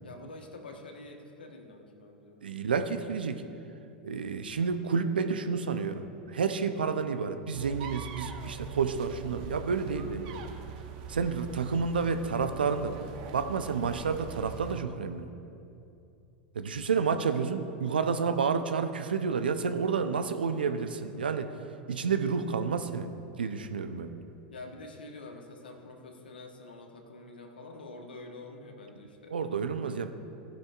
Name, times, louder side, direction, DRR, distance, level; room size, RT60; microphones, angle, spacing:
voice 1, 0.0-2.4 20.4-20.8 24.5-29.3, left 2 dB, 85° left, 2 dB, 1.2 m, -47 dB
voice 2, 2.4-3.4 4.0-6.0 6.3-10.4 11.1-13.0 13.3-15.3 16.5-21.5 21.9-23.1 23.4-24.1 29.3-30.1, right 5 dB, 85° right, 9 dB, 0.6 m, -30 dB
sound 1, 7.5-14.8, right 7 dB, 60° right, 0.9 m, -43 dB
15.5 x 10.5 x 2.5 m, 2.7 s
hypercardioid pair, 90°, 5 cm